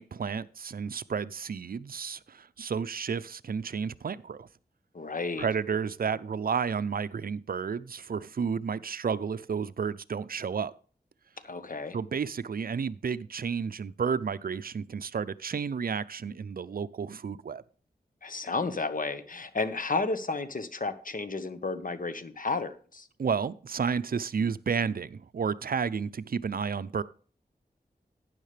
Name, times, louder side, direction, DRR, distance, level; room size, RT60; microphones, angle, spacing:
voice 1, 0.0-4.5 5.4-10.7 11.9-17.6 23.2-27.0, right 6 dB, 65° right, 0.6 m, -31 dB
voice 2, 4.9-5.5 11.4-12.0 18.2-23.1, left 3 dB, 55° left, 1.3 m, -32 dB
12.0 x 9.5 x 3.3 m
wide cardioid pair, 75°, 17 cm